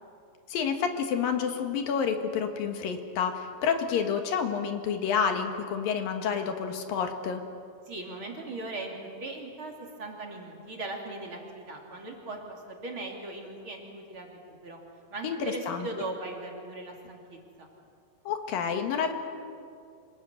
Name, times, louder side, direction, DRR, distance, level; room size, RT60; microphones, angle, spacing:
voice 1, 0.5-7.4 15.2-15.9 18.2-19.1, left 6 dB, 75° left, 6 dB, 3.4 m, -29 dB
voice 2, 7.9-9.7 10.0-12.4 12.7-14.8 15.1-17.7, right 2 dB, 35° right, 0 dB, 3.6 m, -39 dB
26.0 x 20.5 x 9.2 m, 2.4 s
omnidirectional pair, 4.2 m